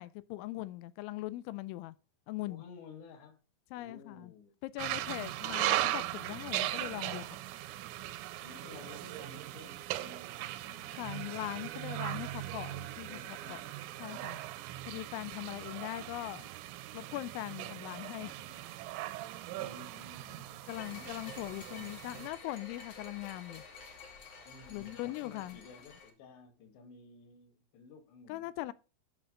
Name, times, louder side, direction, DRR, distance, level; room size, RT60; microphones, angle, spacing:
voice 1, 0.0-1.9 2.3-2.6 3.7-4.3 4.6-7.3 10.9-13.6 14.0-14.4 14.9-16.5 16.9-18.3 20.7-23.6 24.7-25.6 28.3-28.7, left 17 dB, 85° left, 2.9 m, -41 dB
voice 2, 2.5-3.4 3.8-4.6 5.5-5.8 8.4-11.3 12.1-12.4 13.0-14.7 18.0-18.7 19.5-21.7 24.5-28.7, left 4 dB, 65° left, 3.7 m, -54 dB
sound 1, 4.8-22.3, right 15 dB, 90° right, 3.3 m, -39 dB
sound 2, 20.7-26.1, left 4 dB, 50° left, 2.6 m, -50 dB
12.0 x 5.8 x 3.7 m
omnidirectional pair, 5.6 m